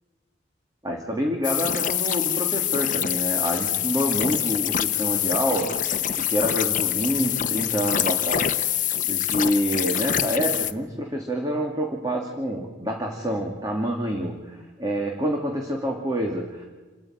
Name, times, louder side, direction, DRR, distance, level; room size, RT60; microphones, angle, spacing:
voice 1, 0.8-5.8 6.1-16.6, equal, 20° right, 1 dB, 2.6 m, -27 dB
sound 1, 1.4-10.7, left 10 dB, 45° left, 0.9 m, -25 dB
28.5 x 14.5 x 9.2 m, 1.3 s
head